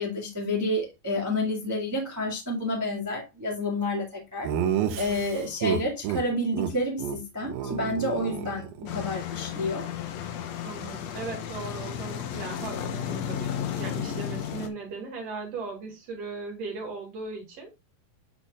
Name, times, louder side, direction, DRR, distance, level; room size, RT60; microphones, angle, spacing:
voice 1, 0.0-4.5 5.0-9.9, left 1 dB, 20° right, 0.4 m, -29 dB
Laughter, 4.4-6.2 6.5-6.7 7.0-7.2 7.4-9.0, right 9 dB, 85° right, 2.8 m, -30 dB
voice 2, 4.8-5.2 7.6-8.2 10.6-17.7, right 4 dB, 50° right, 2.7 m, -38 dB
sound 1, 8.9-14.7, left 9 dB, 80° left, 1.5 m, -33 dB
10.5 x 4.1 x 2.3 m
omnidirectional pair, 4.2 m